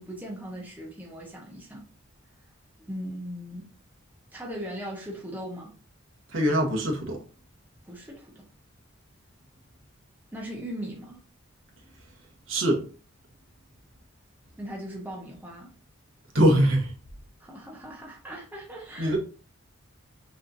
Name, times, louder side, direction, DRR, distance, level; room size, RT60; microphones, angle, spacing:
voice 1, 0.0-1.8 2.9-3.6 4.3-5.7 7.8-8.5 10.3-11.2 14.6-15.7 17.4-19.2, equal, 10° right, 1.1 m, -39 dB
voice 2, 6.3-7.2 12.5-12.8 16.3-16.9 19.0-19.2, equal, 60° right, 1.3 m, -22 dB
6.1 x 3.3 x 2.7 m
head